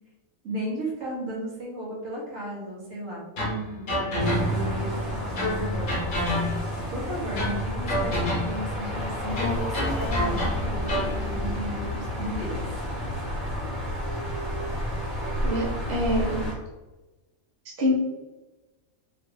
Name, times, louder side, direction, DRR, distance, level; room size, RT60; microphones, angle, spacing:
voice 1, 0.4-3.2 3.7-6.1 6.9-12.8, equal, 80° right, -4 dB, 1.4 m, -35 dB
sound 1, 3.4-4.8 5.4-6.8 7.4-8.7 9.4-11.2, left 1 dB, 45° left, 0.7 m, -29 dB
sound 2, 4.2-16.5, equal, ahead, 1.0 m, -30 dB
voice 2, 15.4-16.4 17.8-17.9, left 1 dB, 50° right, -4 dB, 0.9 m, -25 dB
3.1 x 2.4 x 3.0 m, 1.1 s
omnidirectional pair, 1.4 m